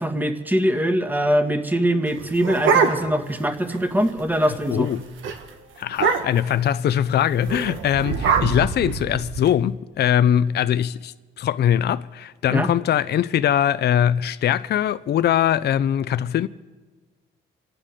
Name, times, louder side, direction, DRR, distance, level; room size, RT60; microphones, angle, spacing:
voice 1, 0.0-4.9 12.5-12.7, equal, 10° right, 1.5 m, -22 dB
sound 1, 2.1-3.3 3.7-3.8 4.1-4.4 4.7-4.9 5.2-5.4 5.9-6.5 7.4-9.5, right 6 dB, 75° right, 1.6 m, -23 dB
voice 2, 4.7-5.0 5.8-16.5, left 10 dB, 55° left, 0.5 m, -21 dB
27.0 x 9.9 x 5.1 m
cardioid pair, 90°, 20 cm